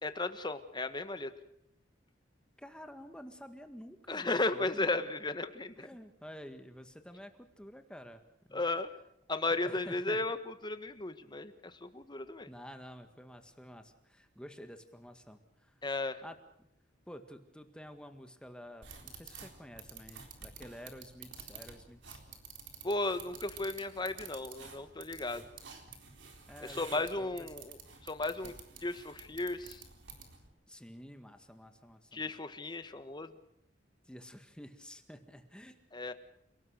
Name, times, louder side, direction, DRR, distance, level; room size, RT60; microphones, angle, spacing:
voice 1, 0.0-1.3 4.1-5.9 8.5-8.9 9.3-12.5 15.8-16.2 22.8-25.4 26.6-27.8 28.0-28.5 28.8-29.8 32.1-33.3 35.9-36.1, left 2 dB, 25° left, 10 dB, 1.5 m, -35 dB
voice 2, 2.6-4.9 5.8-8.2 8.5-8.6 9.6-10.2 12.5-15.7 16.2-16.7 17.1-22.2 26.5-27.5 30.7-32.3 34.0-35.8, equal, 5° left, 7 dB, 1.8 m, -50 dB
sound 1, 18.8-30.5, right 5 dB, 80° right, 4.0 m, -51 dB
29.5 x 18.5 x 6.6 m, 0.75 s
head